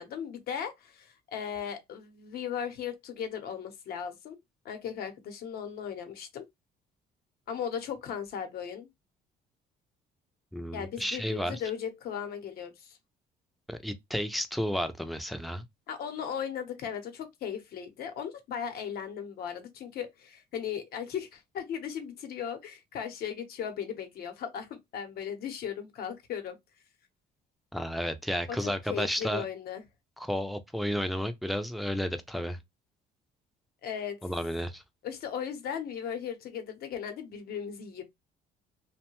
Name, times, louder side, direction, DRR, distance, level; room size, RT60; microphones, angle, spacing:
voice 1, 0.0-4.4 4.6-6.4 7.5-8.9 10.7-13.0 15.9-26.6 28.5-29.8 33.8-34.2 35.0-38.0, left 8 dB, 65° left, 0.8 m, -37 dB
voice 2, 10.5-11.6 13.7-15.6 27.7-29.4 30.2-32.6 34.2-34.8, equal, ahead, 0.4 m, -32 dB
2.7 x 2.2 x 2.9 m
cardioid pair, 110°, 17 cm